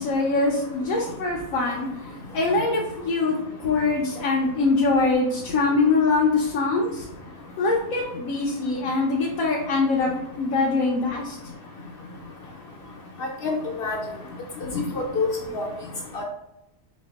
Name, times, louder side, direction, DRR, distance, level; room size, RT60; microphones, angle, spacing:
voice 1, 0.0-1.9 2.3-3.3 3.6-7.1 7.6-10.1 10.4-11.4, left 3 dB, 85° left, -3 dB, 1.2 m, -23 dB
voice 2, 13.2-14.0 14.6-15.3 15.5-15.6 16.1-16.2, left 4 dB, 55° left, 0 dB, 0.7 m, -27 dB
5.3 x 2.3 x 3.5 m, 0.88 s
omnidirectional pair, 1.4 m